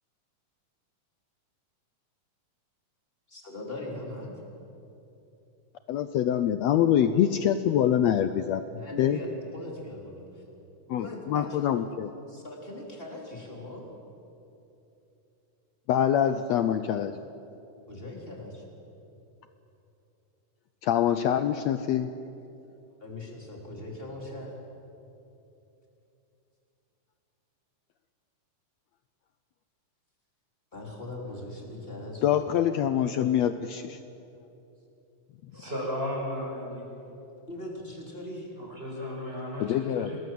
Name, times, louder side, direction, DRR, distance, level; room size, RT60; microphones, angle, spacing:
voice 1, 3.3-4.4 8.7-10.4 11.0-11.6 12.3-13.9 17.9-18.6 23.0-24.5 30.7-32.3 33.1-33.3 37.5-38.5, left 1 dB, 15° left, -1 dB, 3.9 m, -40 dB
voice 2, 5.9-8.6 9.0-9.2 10.9-12.1 15.9-17.1 20.8-22.1 32.2-34.0 39.6-40.1, left 10 dB, 80° left, 10 dB, 1.5 m, -25 dB
voice 3, 35.5-36.9 38.6-40.2, left 1 dB, 15° right, -2 dB, 6.5 m, -34 dB
27.5 x 20.0 x 7.8 m, 2.8 s
omnidirectional pair, 3.8 m